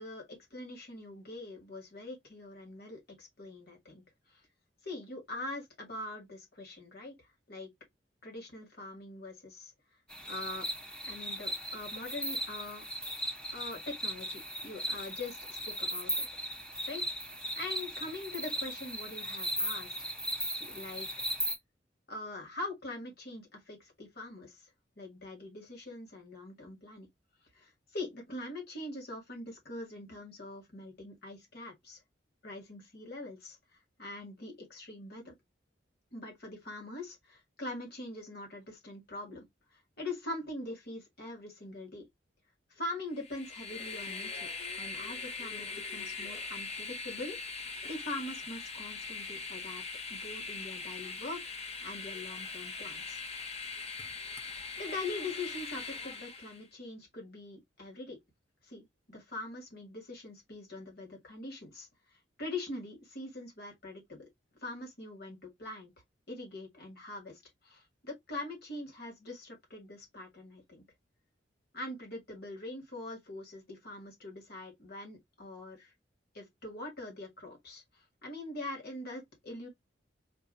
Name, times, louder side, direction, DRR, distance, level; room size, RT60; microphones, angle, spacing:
voice 1, 0.0-4.0 4.3-4.4 4.8-7.2 7.5-7.7 8.2-9.7 10.3-10.7 11.0-12.8 13.5-16.3 16.8-17.0 17.5-20.1 20.6-21.2 22.1-24.7 25.0-27.1 27.5-32.0 32.4-33.6 34.0-35.3 36.1-39.5 39.7-42.1 42.7-44.5 44.8-49.8 50.1-53.2 54.8-58.2 58.6-61.9 62.4-64.3 64.6-65.9 66.3-70.8 71.7-75.9 76.3-79.7, left 2 dB, 60° left, 2.0 m, -43 dB
sound 1, 10.1-21.6, equal, 5° left, 1.0 m, -37 dB
Train, 43.1-56.6, left 4 dB, 35° left, 0.8 m, -41 dB
4.5 x 2.7 x 2.6 m
head